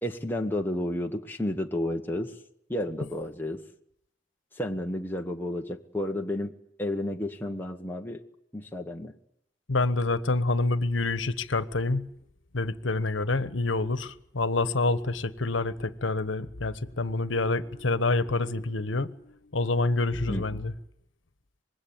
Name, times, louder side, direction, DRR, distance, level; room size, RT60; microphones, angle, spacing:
voice 1, 0.0-2.3 2.7-3.6 4.6-6.5 6.8-8.2 8.5-9.1 20.3-20.6, left 1 dB, 10° left, 1.3 m, -31 dB
voice 2, 9.7-12.1 12.5-19.2 19.5-20.7, left 3 dB, 80° left, 1.2 m, -27 dB
25.5 x 21.5 x 8.8 m
head